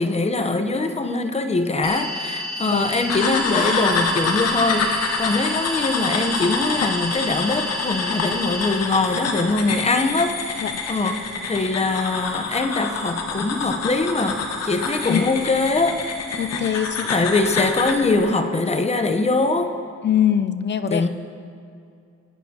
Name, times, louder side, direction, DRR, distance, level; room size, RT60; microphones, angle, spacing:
voice 1, 0.0-16.0 17.1-19.8 20.9-21.1, left 3 dB, 20° left, 7 dB, 0.9 m, -22 dB
sound 1, 1.8-8.7, left 2 dB, 75° left, 2.6 m, -31 dB
voice 2, 2.6-2.9 10.6-10.7 15.1-15.3 16.4-17.3 20.0-21.1, left 9 dB, 35° left, 12 dB, 0.5 m, -23 dB
sound 2, 3.1-18.0, left 4 dB, 55° left, 1.4 m, -27 dB
21.0 x 9.9 x 2.9 m, 2.4 s
cardioid pair, 90°, 30 cm